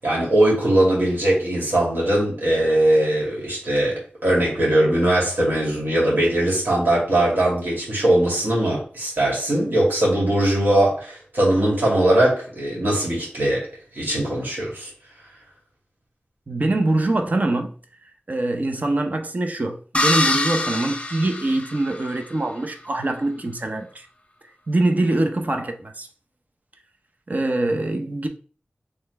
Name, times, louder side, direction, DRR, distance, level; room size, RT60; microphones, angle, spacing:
voice 1, 0.0-13.7 13.9-14.9, right 1 dB, 75° right, 2.3 m, -20 dB
voice 2, 16.5-17.7 18.3-24.1 24.7-26.1 27.3-28.3, right 2 dB, 50° right, 0.7 m, -23 dB
sound 1, 19.9-22.2, left 2 dB, 35° left, 0.7 m, -24 dB
4.3 x 3.3 x 3.3 m
wide cardioid pair, 85°, 4 cm